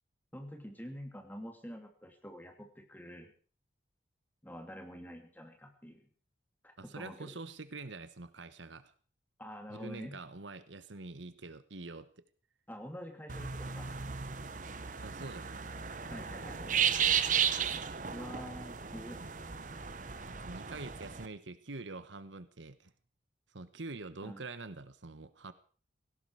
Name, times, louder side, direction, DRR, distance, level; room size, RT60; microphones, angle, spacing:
voice 1, 0.3-3.3 4.4-6.1 6.6-7.3 9.4-10.2 12.7-13.9 16.1-16.8 18.1-19.2 24.2-24.4, equal, 10° left, 4 dB, 2.8 m, -47 dB
voice 2, 6.8-8.9 9.7-12.1 15.0-15.6 18.8-19.3 20.2-22.9 23.5-25.5, right 3 dB, 80° right, 13 dB, 1.2 m, -45 dB
sound 1, 13.3-21.3, right 7 dB, 40° right, 1.0 m, -34 dB
17.5 x 17.0 x 4.8 m, 0.41 s
head